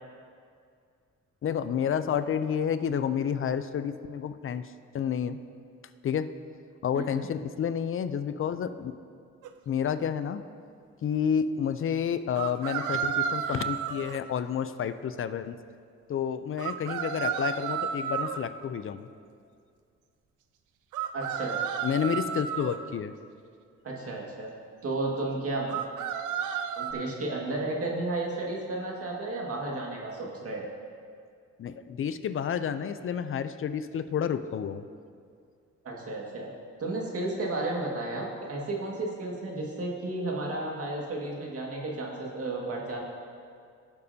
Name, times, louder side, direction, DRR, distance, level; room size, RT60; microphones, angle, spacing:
voice 1, 1.4-5.4 6.0-6.3 6.8-8.9 9.7-10.4 11.0-15.6 16.1-19.1 21.8-23.1 31.6-34.8, left 8 dB, 45° left, 11 dB, 0.5 m, -30 dB
voice 2, 6.9-7.3 21.1-21.6 23.8-24.5 24.8-25.9 26.8-30.7 35.8-36.5 36.8-43.0, right 2 dB, 50° right, -2 dB, 1.9 m, -33 dB
sound 1, 9.4-9.5 12.3-14.2 16.6-18.4 20.9-22.8 25.7-26.9, right 8 dB, 80° right, 0.7 m, -32 dB
17.0 x 6.8 x 2.8 m, 2.2 s
cardioid pair, 90°, 30 cm